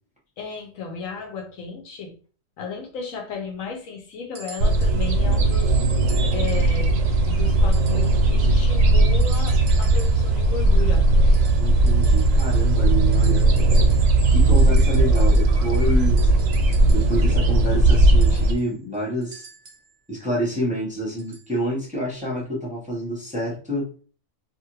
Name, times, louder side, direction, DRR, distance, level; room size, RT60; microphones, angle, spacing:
voice 1, 0.4-2.2 2.6-5.8 6.3-7.0 7.2-11.1, left 5 dB, 85° left, 2 dB, 1.2 m, -34 dB
sound 1, 4.3-5.0 6.1-6.8 7.7-8.3 9.2-10.3 11.3-12.9 13.1-14.2 14.6-17.2 18.2-19.9 21.2-21.5 22.4-22.5, right 5 dB, 40° right, 0.8 m, -45 dB
sound 2, 4.6-18.5, right 2 dB, 85° right, 1.0 m, -18 dB
voice 2, 11.6-13.4 14.3-16.2 16.9-19.5 20.1-23.9, equal, 5° right, -5 dB, 0.9 m, -28 dB
2.6 x 2.5 x 3.0 m, 0.40 s
omnidirectional pair, 1.3 m